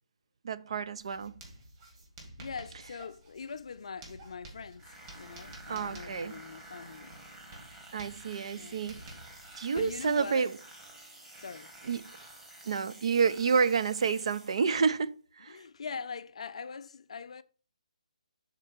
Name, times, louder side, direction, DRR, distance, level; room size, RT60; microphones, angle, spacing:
voice 1, 0.4-1.3 2.7-2.9 5.7-6.4 7.9-9.0 9.6-10.6 11.8-12.1 12.6-15.6, right 5 dB, 55° right, 0.5 m, -29 dB
Writing, 1.0-10.3, right 1 dB, 35° right, 2.5 m, -52 dB
voice 2, 2.4-7.2 8.5-8.8 9.6-10.5 11.4-11.7 14.8-14.9 15.5-17.4, left 5 dB, 60° left, 0.5 m, -42 dB
sound 1, 4.8-14.9, right 1 dB, 10° right, 1.3 m, -51 dB
6.5 x 3.9 x 5.1 m
figure-of-eight pair, 145°, 4 cm